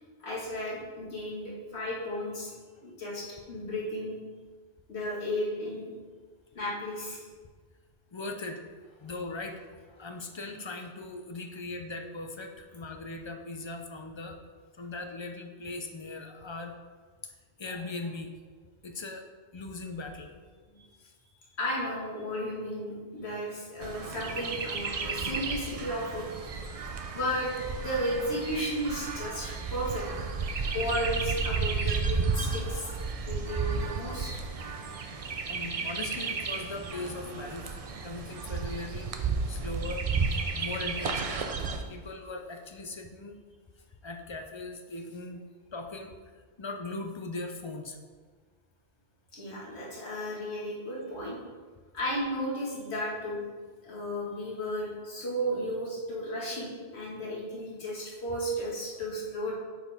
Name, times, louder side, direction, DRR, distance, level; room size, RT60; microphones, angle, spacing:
voice 1, 0.2-2.5 2.8-4.2 4.9-5.9 6.5-7.2 21.6-26.3 27.1-27.5 27.8-30.0 30.7-32.9 33.2-34.4 49.3-51.4 51.9-53.4 53.8-59.5, equal, 70° left, -6 dB, 2.1 m, -34 dB
voice 2, 8.1-8.6 9.0-14.4 14.7-16.8 17.2-18.3 18.8-19.3 19.5-21.1 34.3-34.8 35.5-37.7 38.0-41.5 41.9-43.4 44.0-46.1 46.6-48.0 50.1-50.2, left 2 dB, 45° left, 4 dB, 0.3 m, -40 dB
Chirp tweet, 23.8-41.8, right 4 dB, 50° right, 0.4 m, -33 dB
8.3 x 4.6 x 3.5 m, 1.5 s
omnidirectional pair, 1.1 m